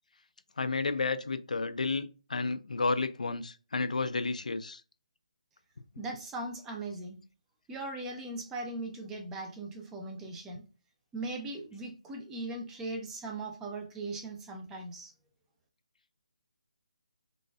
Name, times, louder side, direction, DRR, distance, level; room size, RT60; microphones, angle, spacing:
voice 1, 0.6-4.8, left 3 dB, 90° left, 0.4 m, -31 dB
voice 2, 6.0-7.2 7.7-10.6 11.1-15.1, right 2 dB, 5° right, 0.3 m, -39 dB
4.0 x 2.3 x 2.2 m
hypercardioid pair, 170°, 4 cm